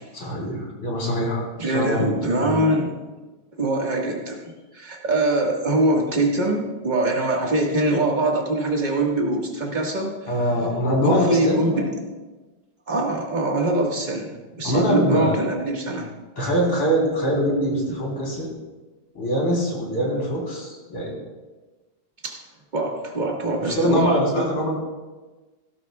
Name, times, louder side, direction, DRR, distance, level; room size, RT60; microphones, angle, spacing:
voice 1, 0.1-2.0 2.3-2.6 10.3-11.8 14.6-15.4 16.4-18.5 19.1-21.1 23.6-24.7, equal, 80° left, -3 dB, 4.4 m, -23 dB
voice 2, 1.6-2.9 3.6-4.4 4.7-10.3 11.0-11.9 12.9-16.1 22.2-22.4 22.7-24.5, right 2 dB, 25° right, -1 dB, 1.6 m, -23 dB
17.0 x 12.0 x 2.4 m, 1.2 s
omnidirectional pair, 2.2 m